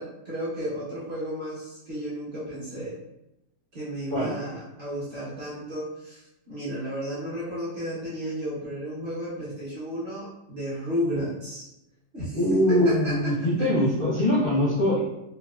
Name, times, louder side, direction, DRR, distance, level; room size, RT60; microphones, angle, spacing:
voice 1, 0.0-3.0 3.7-11.7 12.1-13.7, equal, 45° right, -10 dB, 0.9 m, -33 dB
voice 2, 12.3-15.0, left 1 dB, 50° left, -8 dB, 0.6 m, -22 dB
3.9 x 2.2 x 2.3 m, 0.88 s
omnidirectional pair, 2.0 m